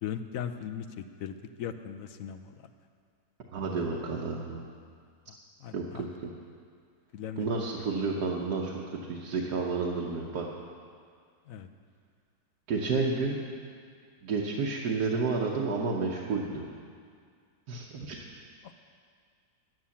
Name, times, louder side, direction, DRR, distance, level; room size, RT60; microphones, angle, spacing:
voice 1, 0.0-2.5 5.3-6.1 7.1-7.5 11.5-11.7 18.6-18.7, left 8 dB, 65° left, 9 dB, 1.0 m, -39 dB
voice 2, 3.5-4.6 5.7-6.3 7.4-10.5 12.7-13.4 14.2-16.7 17.7-18.2, right 4 dB, 80° right, -2 dB, 1.5 m, -31 dB
11.5 x 9.3 x 7.1 m, 2.1 s
omnidirectional pair, 1.7 m